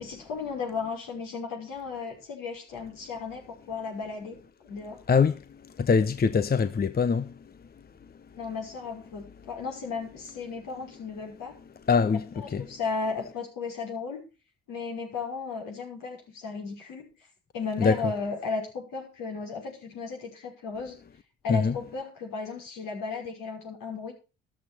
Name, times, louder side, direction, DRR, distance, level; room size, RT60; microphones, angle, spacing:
voice 1, 0.0-4.4 4.6-5.0 8.3-11.6 12.3-14.2 14.7-17.1 17.5-21.0 21.4-24.1, left 4 dB, 65° left, 5.9 m, -35 dB
voice 2, 5.1-7.5 11.9-12.8 17.8-18.1 21.5-21.8, left 5 dB, 25° left, 0.9 m, -24 dB
13.5 x 11.5 x 4.5 m
hypercardioid pair, 50°, 35 cm